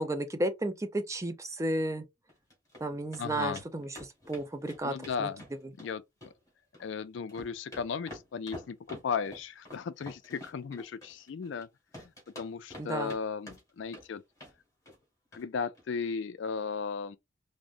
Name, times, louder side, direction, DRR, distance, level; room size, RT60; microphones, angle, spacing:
voice 1, 0.0-2.0 2.8-3.9 4.3-4.9 5.2-5.3 12.8-13.1, right 1 dB, 15° right, 0.5 m, -32 dB
sound 1, 2.3-2.8 3.1-3.2 3.6-3.7 3.9-5.9 6.2-6.9 7.2-11.6 11.9-13.2 13.5-14.1 14.4-14.6 14.9-15.0 15.3-15.4 15.7-15.8, left 1 dB, 15° left, 1.9 m, -48 dB
voice 2, 3.2-3.6 4.8-5.4 5.8-6.3 6.8-11.7 12.0-12.1 12.4-14.2 15.3-17.2, left 6 dB, 65° left, 0.4 m, -36 dB
4.8 x 2.1 x 2.5 m
head